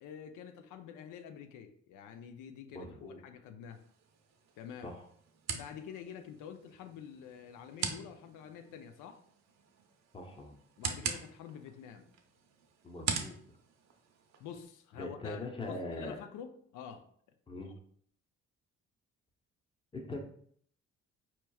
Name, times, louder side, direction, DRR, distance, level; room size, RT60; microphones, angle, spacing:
voice 1, 0.0-3.8 4.6-4.9 5.5-9.2 10.8-12.1 14.4-17.0 17.6-17.7, left 8 dB, 85° left, 8 dB, 0.5 m, -48 dB
voice 2, 2.7-3.2 4.8-4.9 10.1-10.5 12.8-13.4 15.0-16.2 17.5-17.7 19.9-20.2, left 2 dB, 15° left, 2 dB, 0.7 m, -41 dB
sound 1, 3.7-14.7, right 6 dB, 60° right, 0.6 m, -43 dB
4.4 x 3.0 x 2.3 m, 0.62 s
cardioid pair, 90°, 30 cm